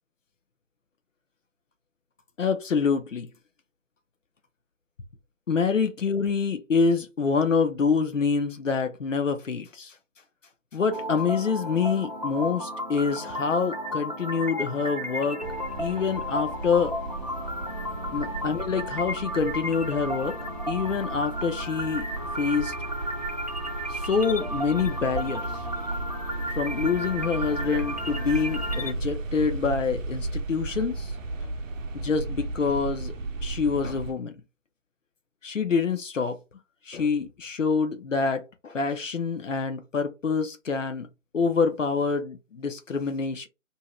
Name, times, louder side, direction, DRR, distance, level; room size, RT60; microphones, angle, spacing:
voice 1, 2.4-3.3 5.5-9.9 10.7-15.4 15.8-16.9 18.1-20.3 20.7-22.1 22.4-22.7 23.9-25.4 26.6-31.1 31.4-31.5 31.9-33.1 33.4-34.3 35.4-36.4 36.9-41.1 41.3-43.5, left 5 dB, 80° left, 0.7 m, -26 dB
sound 1, 10.9-28.9, equal, 35° right, 0.4 m, -34 dB
sound 2, 15.4-34.1, right 2 dB, 85° right, 0.6 m, -35 dB
2.7 x 2.3 x 2.9 m
figure-of-eight pair, 160°, 38 cm